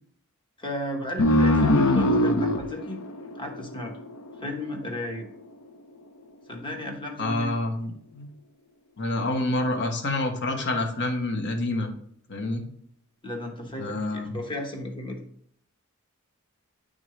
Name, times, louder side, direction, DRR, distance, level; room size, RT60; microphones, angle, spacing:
voice 1, 0.6-3.0 3.4-4.0 4.4-5.3 6.5-7.5 13.2-15.3, left 1 dB, 25° left, 2 dB, 1.2 m, -34 dB
sound 1, 1.2-4.3, left 1 dB, 75° left, 0.7 m, -22 dB
voice 2, 7.2-8.3 9.0-11.9 12.3-12.6 13.8-14.4, left 2 dB, 55° left, 4 dB, 1.2 m, -28 dB
11.0 x 3.8 x 3.2 m, 0.65 s
head